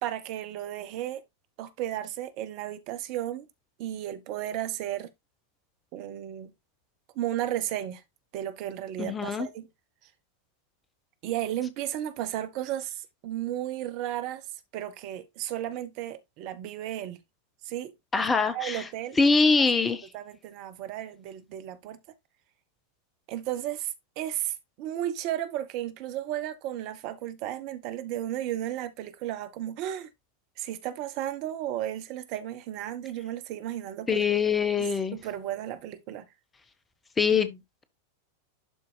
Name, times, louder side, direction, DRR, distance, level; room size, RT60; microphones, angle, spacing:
voice 1, 0.0-1.2 1.6-3.5 3.8-5.1 5.9-6.5 7.1-8.0 8.3-9.7 11.2-14.5 14.7-17.2 17.6-18.3 18.5-19.2 19.6-19.8 20.1-22.0 23.3-30.1 30.6-34.2 34.8-36.3, right 12 dB, 45° right, 1.0 m, -34 dB
voice 2, 9.0-9.5 18.1-18.8 19.2-20.1 34.1-35.2 37.2-37.8, left 4 dB, 15° left, 1.1 m, -24 dB
12.0 x 4.6 x 2.2 m
figure-of-eight pair, 90°, 0 cm